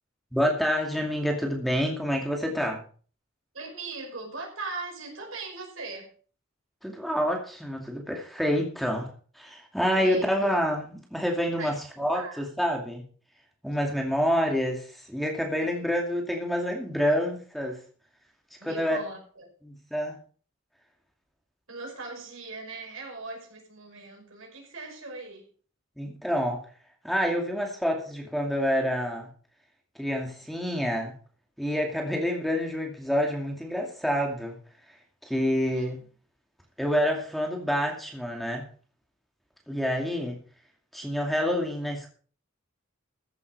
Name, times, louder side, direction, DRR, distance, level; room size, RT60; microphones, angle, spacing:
voice 1, 0.3-2.8 6.8-13.0 13.6-17.8 18.6-19.0 19.6-20.2 26.0-26.6 27.0-29.3 30.0-31.1 31.6-34.6 35.2-36.0 36.8-38.7 39.7-40.4 40.9-42.1, equal, ahead, 1 dB, 2.4 m, -27 dB
voice 2, 3.5-6.1 9.9-10.3 11.6-11.7 12.1-12.4 15.6-15.7 18.6-19.5 21.7-25.5 35.7-35.9, right 3 dB, 75° right, 1 dB, 5.6 m, -39 dB
14.5 x 8.3 x 5.4 m, 0.41 s
head